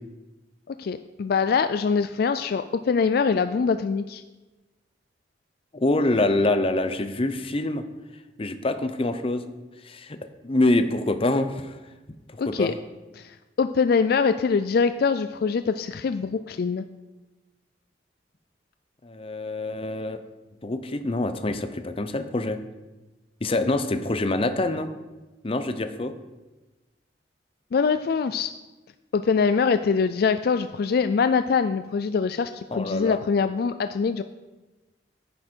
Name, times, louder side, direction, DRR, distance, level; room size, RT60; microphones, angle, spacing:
voice 1, 0.7-4.2 12.4-12.7 13.2-16.8 27.7-28.5 29.1-34.2, left 5 dB, 60° left, 10 dB, 0.3 m, -23 dB
voice 2, 5.7-7.8 8.4-9.4 9.8-10.2 10.4-11.8 12.3-12.7 19.0-20.2 20.6-22.6 23.4-24.9 25.4-26.1 32.7-33.2, left 2 dB, 30° left, 9 dB, 0.7 m, -25 dB
9.8 x 9.7 x 4.5 m, 1.2 s
head